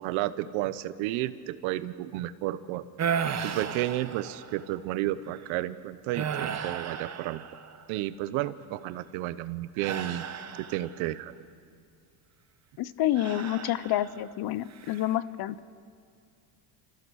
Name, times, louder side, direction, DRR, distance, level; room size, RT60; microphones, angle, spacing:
voice 1, 0.0-2.8 3.4-7.4 7.9-10.2 10.6-11.3, right 15 dB, 75° right, 15 dB, 1.0 m, -32 dB
sound 1, 3.0-4.7 5.3-5.5 6.1-8.0 9.8-11.1 13.2-14.3 14.7-15.1, right 7 dB, 35° right, 1.1 m, -34 dB
voice 2, 12.8-15.6, left 13 dB, 50° left, 17 dB, 0.7 m, -28 dB
29.5 x 15.0 x 6.3 m, 2.2 s
cardioid pair, 110°, 47 cm